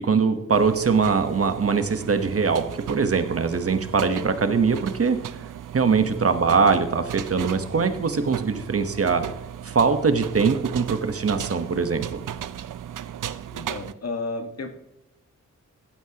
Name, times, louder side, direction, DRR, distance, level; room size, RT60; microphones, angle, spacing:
voice 1, 0.0-5.2 5.7-9.2 9.6-12.2, right 5 dB, 50° right, 8 dB, 1.2 m, -22 dB
sound 1, 0.5-13.9, right 10 dB, 80° right, 0.6 m, -36 dB
voice 2, 13.5-14.7, left 3 dB, 55° left, 6 dB, 1.6 m, -32 dB
15.5 x 12.0 x 2.9 m, 0.89 s
wide cardioid pair, 85°, 31 cm